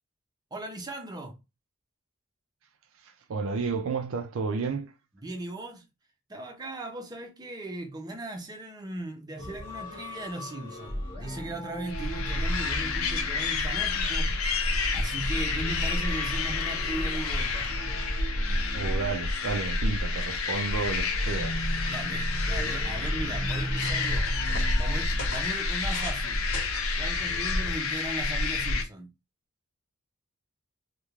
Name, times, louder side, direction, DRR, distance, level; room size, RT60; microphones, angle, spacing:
voice 1, 0.5-1.4 5.2-5.9 6.3-14.4 14.6-17.7 21.9-24.3 24.8-26.4 27.0-29.1, right 2 dB, 20° right, 0.5 m, -38 dB
voice 2, 3.0-4.9 18.7-21.9, right 4 dB, 65° right, 0.4 m, -32 dB
sound 1, 9.4-14.0 15.1-19.9 21.1-25.8 27.1-27.8, equal, 25° left, 0.9 m, -38 dB
sound 2, 11.9-28.8, left 3 dB, 90° left, 0.6 m, -29 dB
sound 3, 22.1-22.6 23.2-23.3 23.5-26.2 26.5-26.9 27.7-28.0, left 3 dB, 55° left, 1.0 m, -41 dB
2.4 x 2.1 x 3.0 m
head